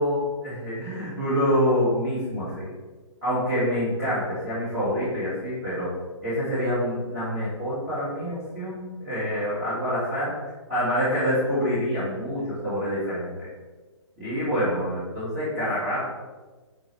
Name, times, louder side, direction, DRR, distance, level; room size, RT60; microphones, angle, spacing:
voice 1, 0.0-2.7 3.2-5.9 6.2-10.3 10.7-13.5 14.2-16.0, equal, 15° right, -12 dB, 1.7 m, -26 dB
6.0 x 4.2 x 4.6 m, 1.3 s
hypercardioid pair, 170°, 16 cm